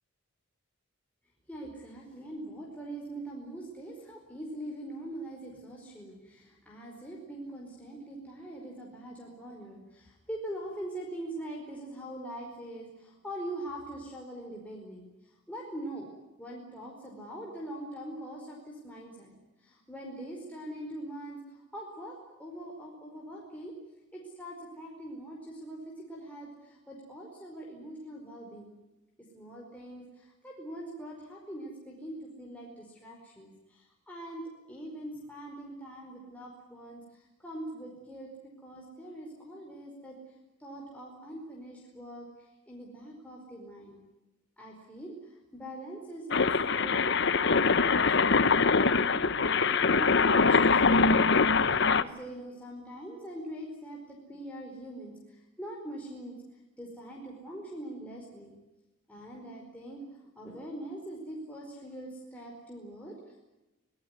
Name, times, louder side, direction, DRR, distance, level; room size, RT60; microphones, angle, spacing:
voice 1, 1.5-16.1 16.4-19.3 19.6-23.7 24.1-28.8 29.3-40.2 40.6-44.0 44.6-51.3 51.6-58.5 59.1-63.4, right 1 dB, 5° left, -2 dB, 4.9 m, -43 dB
sound 1, 46.3-52.0, left 4 dB, 55° left, 1.0 m, -23 dB
25.0 x 18.5 x 9.7 m, 1.0 s
head